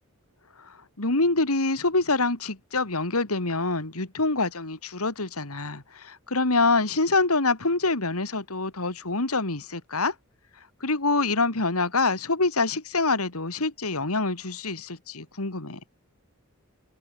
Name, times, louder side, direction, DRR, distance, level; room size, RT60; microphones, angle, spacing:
voice 1, 0.6-10.1 10.8-15.8, left 3 dB, 85° left, 3.0 m, -26 dB
open air
head